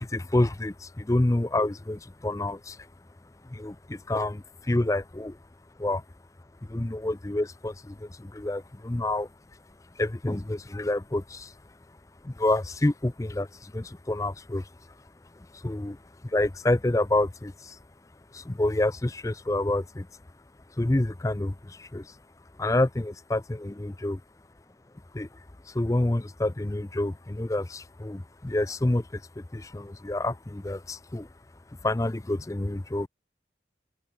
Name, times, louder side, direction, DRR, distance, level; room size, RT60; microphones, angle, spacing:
voice 1, 0.0-2.9 3.5-5.4 5.8-6.0 6.7-9.3 10.0-11.5 12.2-14.7 15.5-16.0 16.2-17.8 18.3-20.1 20.8-22.1 22.6-24.2 25.1-25.3 25.7-31.3 31.8-33.1, left 1 dB, 20° left, 0.5 m, -28 dB
open air
head